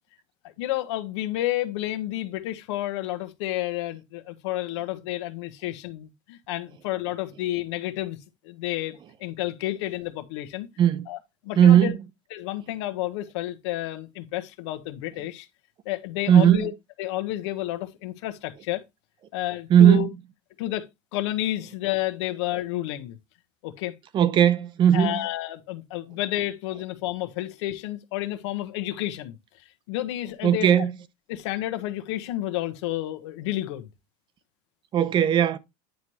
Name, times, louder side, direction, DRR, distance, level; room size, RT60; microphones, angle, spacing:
voice 1, 0.4-8.2 8.4-10.7 11.1-11.2 11.4-11.9 12.3-15.5 15.8-16.7 17.0-18.8 19.3-20.1 20.6-23.2 23.6-23.9 24.9-29.4 29.9-30.9 31.3-33.9, left 15 dB, 80° left, 1.2 m, -30 dB
voice 2, 11.6-11.9 16.3-16.7 19.7-20.1 24.1-25.2 30.4-30.9 34.9-35.6, right 9 dB, 35° right, 0.7 m, -17 dB
9.4 x 3.2 x 5.6 m
supercardioid pair, 145°, 14 cm